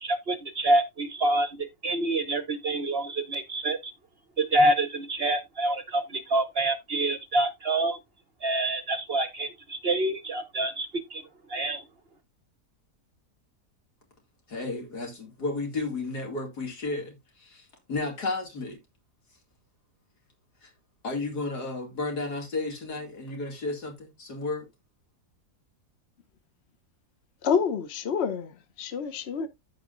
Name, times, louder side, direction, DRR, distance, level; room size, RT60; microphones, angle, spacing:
voice 1, 0.0-3.9 4.4-8.0 8.4-11.2 11.5-11.8, right 2 dB, 50° right, 0.8 m, -27 dB
voice 2, 14.5-18.8 20.6-20.7 21.0-24.7, left 3 dB, 80° left, 2.9 m, -33 dB
voice 3, 27.4-28.5 28.8-29.5, left 6 dB, 50° left, 1.0 m, -27 dB
14.5 x 4.9 x 2.5 m
omnidirectional pair, 1.7 m